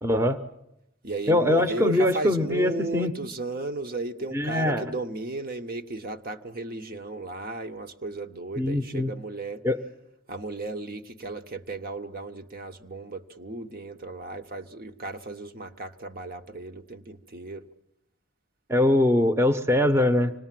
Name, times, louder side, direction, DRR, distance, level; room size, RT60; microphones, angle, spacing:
voice 1, 0.0-0.4 1.3-3.1 4.3-4.8 8.6-9.1 9.6-9.8 18.7-20.3, left 1 dB, 15° right, 0.9 m, -22 dB
voice 2, 1.0-9.6 10.3-17.6, right 2 dB, 45° right, 1.1 m, -35 dB
25.5 x 19.5 x 7.6 m
head